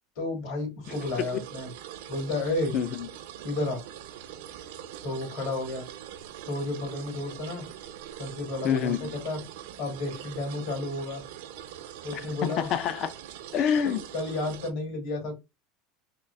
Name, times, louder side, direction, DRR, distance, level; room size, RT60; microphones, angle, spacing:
voice 1, 0.2-1.7 2.1-2.7 3.4-3.8 5.0-5.9 6.5-7.6 8.2-9.4 9.8-11.2 12.0-12.7 13.8-15.3, left 2 dB, 70° left, 2.3 m, -32 dB
sound 1, 0.8-14.7, right 11 dB, 85° right, 0.6 m, -43 dB
voice 2, 2.7-3.1 8.6-9.1 12.1-13.1 13.5-14.0, left 8 dB, 45° left, 0.4 m, -27 dB
3.8 x 2.4 x 3.2 m
supercardioid pair, 140°, 0 cm